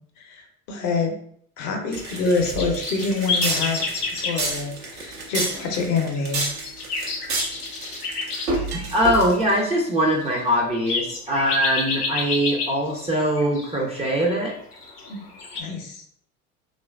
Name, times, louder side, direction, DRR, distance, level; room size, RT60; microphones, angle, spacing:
voice 1, 0.2-1.1 1.6-3.8 4.2-6.5 15.0-15.2 15.6-16.0, left 4 dB, 40° left, 3 dB, 0.6 m, -26 dB
sound 1, 1.9-4.4 4.9-5.1 5.4-5.8 6.1-15.6, left 4 dB, 90° left, 0.7 m, -30 dB
sound 2, 1.9-9.6, right 2 dB, 85° right, 0.9 m, -29 dB
voice 2, 8.9-14.5, equal, 15° right, -2 dB, 0.4 m, -22 dB
2.9 x 2.5 x 2.2 m, 0.63 s
figure-of-eight pair, 70°, 45 cm